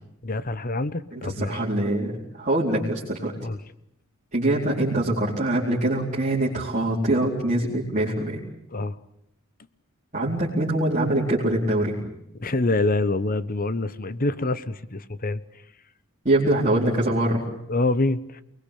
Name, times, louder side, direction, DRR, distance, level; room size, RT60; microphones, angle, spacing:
voice 1, 0.2-1.6 3.4-3.6 8.7-9.0 12.4-15.4 17.7-18.4, left 2 dB, 40° left, 15 dB, 1.1 m, -26 dB
voice 2, 1.1-3.3 4.3-8.4 10.1-12.0 16.2-17.4, right 1 dB, 35° right, -5 dB, 4.5 m, -24 dB
29.0 x 21.0 x 8.5 m, 0.78 s
head